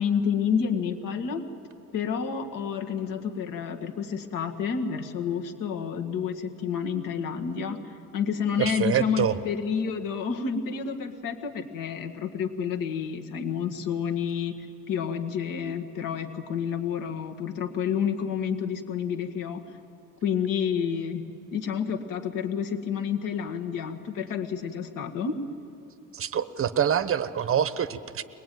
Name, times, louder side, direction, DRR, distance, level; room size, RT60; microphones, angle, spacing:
voice 1, 0.0-1.4 1.9-14.6 14.9-19.6 20.2-21.2 21.5-25.4, left 7 dB, 90° left, 5 dB, 1.9 m, -29 dB
voice 2, 8.6-9.4 26.1-28.2, right 9 dB, 45° right, 13 dB, 0.9 m, -26 dB
23.0 x 20.5 x 9.3 m, 2.8 s
cardioid pair, 130°, 32 cm